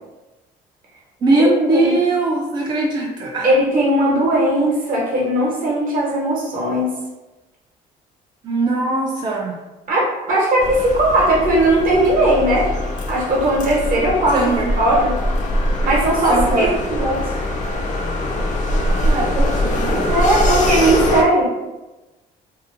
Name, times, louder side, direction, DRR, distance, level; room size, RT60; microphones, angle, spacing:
voice 1, 1.2-3.5 8.4-9.6 14.3-15.0 16.3-16.8 19.0-20.1, right 2 dB, 25° right, -3 dB, 0.3 m, -20 dB
voice 2, 3.4-6.9 9.9-12.7 13.1-14.4 14.7-15.1 15.8-17.2 20.1-21.5, right 1 dB, 55° right, -3 dB, 0.9 m, -18 dB
sound 1, 10.6-21.2, left 1 dB, 45° left, 0.4 m, -22 dB
2.6 x 2.1 x 2.5 m, 1.1 s
cardioid pair, 110°, 17 cm